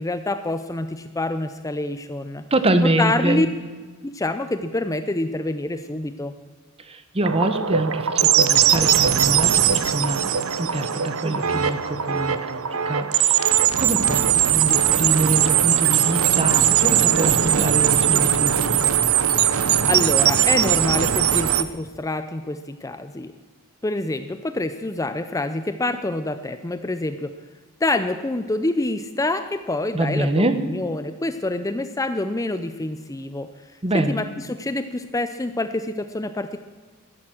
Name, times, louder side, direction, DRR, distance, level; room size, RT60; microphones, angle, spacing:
voice 1, 0.0-2.4 3.0-3.5 4.0-6.3 19.8-23.3 23.8-27.3 27.8-33.5 33.9-36.6, left 2 dB, 15° left, 10 dB, 0.5 m, -26 dB
voice 2, 2.5-3.5 6.8-10.3 10.6-18.9 29.9-30.6 33.8-34.2, right 1 dB, 25° right, 10 dB, 1.0 m, -25 dB
sound 1, 7.2-21.6, right 9 dB, 70° right, 0.7 m, -20 dB
14.0 x 10.5 x 7.7 m, 1.4 s
head